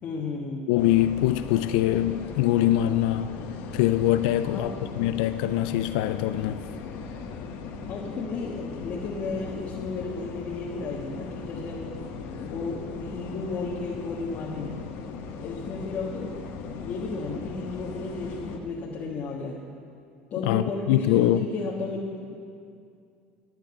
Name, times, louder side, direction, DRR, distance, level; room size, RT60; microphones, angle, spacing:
voice 1, 0.0-0.7 4.5-4.9 7.9-11.9 12.4-14.8 15.4-16.5 16.8-19.6 20.3-22.4, left 3 dB, 45° left, 1.4 m, -33 dB
voice 2, 0.7-3.4 3.7-6.6 20.4-21.5, left 13 dB, 85° left, 0.4 m, -23 dB
sound 1, 0.8-18.6, left 5 dB, 65° left, 1.3 m, -38 dB
12.5 x 9.0 x 7.2 m
cardioid pair, 140°, 4 cm